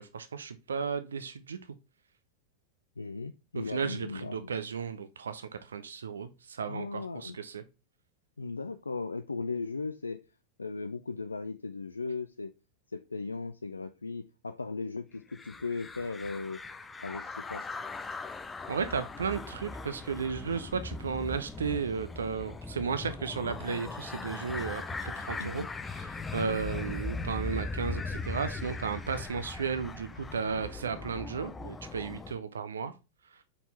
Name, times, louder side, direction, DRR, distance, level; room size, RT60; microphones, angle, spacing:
voice 1, 0.0-1.6 3.5-7.6 18.7-25.6 25.9-32.9, right 6 dB, 70° right, 0.5 m, -34 dB
voice 2, 3.0-4.5 6.7-7.4 8.4-10.2 10.6-12.5 12.9-16.6 17.0-17.7 25.4-25.7 26.4-26.6, left 4 dB, 80° left, 0.3 m, -37 dB
sound 1, 15.3-32.3, left 3 dB, 15° left, 0.5 m, -39 dB
5.3 x 4.3 x 4.2 m
figure-of-eight pair, 90°, 0 cm